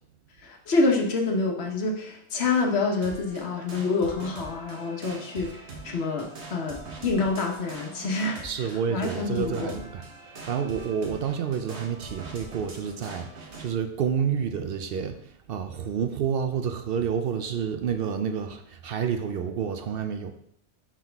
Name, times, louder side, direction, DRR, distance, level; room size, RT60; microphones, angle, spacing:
voice 1, 0.4-9.8, left 3 dB, 70° left, 1 dB, 1.2 m, -27 dB
sound 1, 3.0-13.7, right 2 dB, 80° right, 1.4 m, -43 dB
voice 2, 8.4-20.3, right 7 dB, 65° right, 7 dB, 0.7 m, -29 dB
5.7 x 4.8 x 3.4 m, 0.70 s
omnidirectional pair, 1.1 m